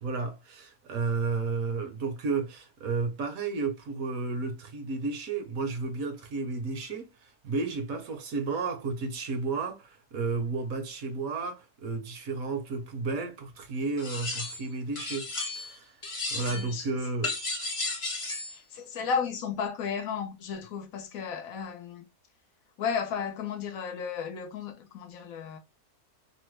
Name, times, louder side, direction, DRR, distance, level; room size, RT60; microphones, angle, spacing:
voice 1, 0.0-15.3 15.5-15.9 16.3-17.4, right 4 dB, 65° right, 1.1 m, -32 dB
sound 1, 14.0-14.7 14.9-15.7 16.0-16.7 17.2-18.6, left 3 dB, 35° left, 0.5 m, -34 dB
voice 2, 16.3-16.9 18.5-22.1 22.8-25.6, left 6 dB, 70° left, 1.1 m, -34 dB
3.1 x 2.1 x 3.1 m
omnidirectional pair, 1.7 m